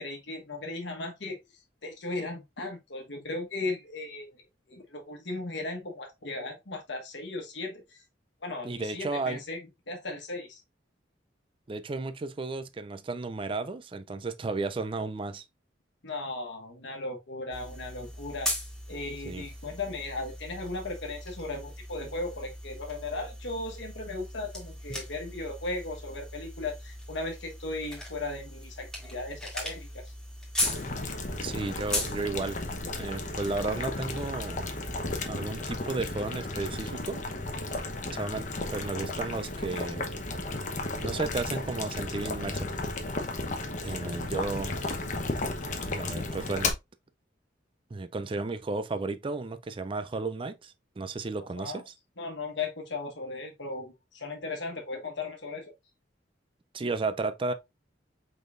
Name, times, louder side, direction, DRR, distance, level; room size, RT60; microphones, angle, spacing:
voice 1, 0.0-1.4 1.8-4.4 4.7-8.0 8.4-10.6 16.0-18.5 18.9-30.1 51.6-51.8 52.2-55.6, left 2 dB, 75° left, 1.2 m, -37 dB
voice 2, 8.6-9.4 11.7-15.4 19.2-19.4 24.9-25.0 31.4-32.6 32.9-34.6 35.3-37.2 38.1-40.1 41.0-42.7 43.8-44.7 45.9-46.7 47.9-51.9 56.7-57.5, right 3 dB, 30° right, 0.4 m, -33 dB
sound 1, 17.5-35.2, left 1 dB, 5° left, 1.7 m, -39 dB
Boiling, 30.6-46.7, left 2 dB, 40° left, 0.9 m, -34 dB
5.1 x 4.0 x 2.5 m
head